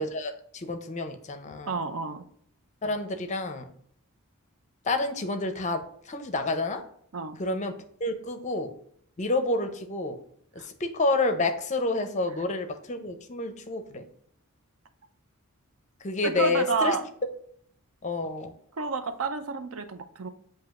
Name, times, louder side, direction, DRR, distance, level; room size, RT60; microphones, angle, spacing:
voice 1, 0.0-1.7 2.8-3.7 4.9-5.8 6.1-6.8 7.4-7.7 8.0-8.7 9.2-10.2 10.8-14.0 16.0-17.0 18.0-18.5, left 2 dB, 30° left, 7 dB, 0.5 m, -29 dB
voice 2, 1.7-2.2 7.1-7.4 10.6-10.7 16.2-17.0 18.8-20.3, right 4 dB, 65° right, 9 dB, 0.5 m, -30 dB
7.5 x 2.8 x 2.4 m, 0.66 s
head